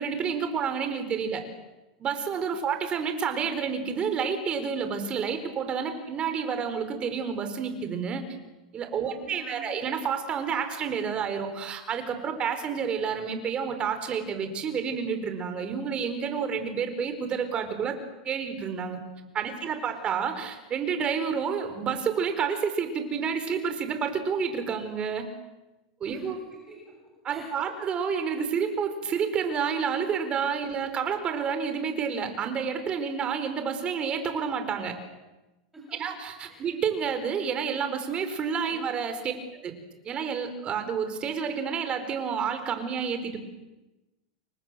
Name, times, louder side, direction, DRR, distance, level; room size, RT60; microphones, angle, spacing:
voice 1, 0.0-1.4 2.0-8.2 8.7-18.0 18.2-19.0 19.3-25.3 26.0-26.4 27.2-35.0 36.0-39.8 40.0-43.4, right 6 dB, 25° right, 8 dB, 4.6 m, -29 dB
voice 2, 9.0-9.7 19.5-19.7 26.1-27.0 27.3-27.7 35.7-36.0 36.5-36.6 38.7-38.9, right 1 dB, 10° right, -1 dB, 6.5 m, -48 dB
29.5 x 24.0 x 7.7 m, 1.0 s
supercardioid pair, 145°, 4 cm